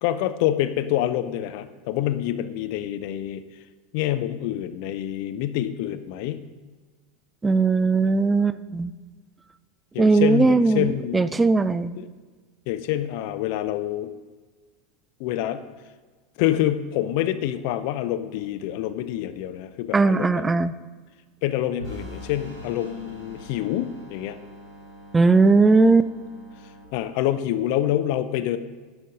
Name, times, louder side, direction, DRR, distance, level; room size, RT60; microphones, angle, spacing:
voice 1, 0.0-3.4 3.9-6.5 9.9-11.3 12.0-12.1 12.7-14.1 15.2-15.6 16.4-20.4 21.4-24.4 26.9-28.6, left 12 dB, 50° left, 11 dB, 0.4 m, -26 dB
voice 2, 7.4-8.9 10.0-11.9 19.9-20.7 25.1-26.1, right 3 dB, 15° right, 14 dB, 0.3 m, -19 dB
sound 1, 21.8-26.8, equal, 5° left, 2.5 m, -46 dB
Vehicle / Engine, 21.8-24.8, left 2 dB, 90° right, 0.8 m, -42 dB
10.0 x 5.3 x 3.7 m, 1.4 s
figure-of-eight pair, 80°, 0 cm